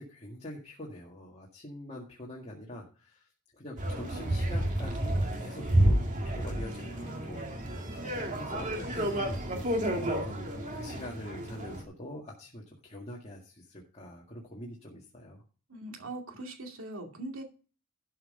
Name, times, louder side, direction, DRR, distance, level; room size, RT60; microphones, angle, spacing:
voice 1, 0.0-3.3 3.5-15.4, left 1 dB, 30° left, -3 dB, 1.9 m, -44 dB
sound 1, 3.8-11.8, right 1 dB, 35° right, 2.2 m, -30 dB
voice 2, 15.7-17.4, right 2 dB, 65° right, 3 dB, 2.5 m, -41 dB
12.5 x 5.6 x 5.4 m, 0.36 s
head